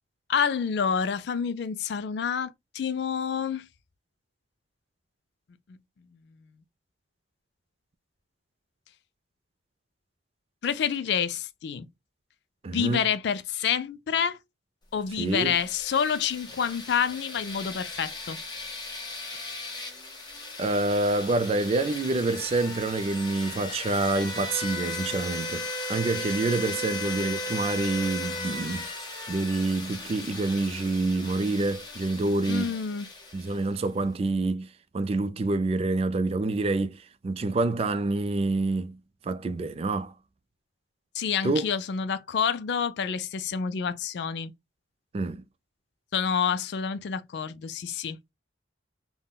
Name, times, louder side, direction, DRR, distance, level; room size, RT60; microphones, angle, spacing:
voice 1, 0.3-3.7 5.7-5.8 10.6-11.9 12.7-14.4 14.9-18.4 32.5-33.1 41.1-44.5 46.1-48.2, left 7 dB, 65° left, 0.4 m, -28 dB
voice 2, 12.6-13.0 15.2-15.6 20.6-28.9 29.3-32.7 33.3-39.0 39.2-40.1 41.4-41.6 45.1-45.4, right 2 dB, 35° right, 0.3 m, -27 dB
sound 1, 15.2-33.8, left 2 dB, 25° left, 0.8 m, -37 dB
3.6 x 2.1 x 2.2 m
head